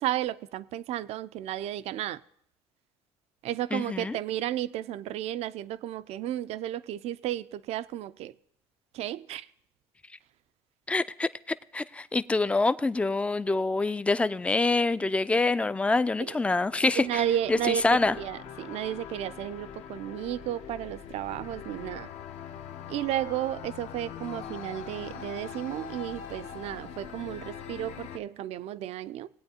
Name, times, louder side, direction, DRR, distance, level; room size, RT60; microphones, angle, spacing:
voice 1, 0.0-2.2 3.4-8.3 8.9-9.5 16.2-16.4 17.0-17.8 18.2-22.1 22.9-29.3, right 12 dB, 65° right, 0.4 m, -33 dB
voice 2, 3.7-4.2 10.9-11.3 11.7-17.2 17.5-18.1, left 3 dB, 10° left, 0.3 m, -26 dB
sound 1, 16.3-28.2, left 8 dB, 70° left, 0.7 m, -43 dB
19.0 x 8.7 x 2.8 m
supercardioid pair, 95°, 12 cm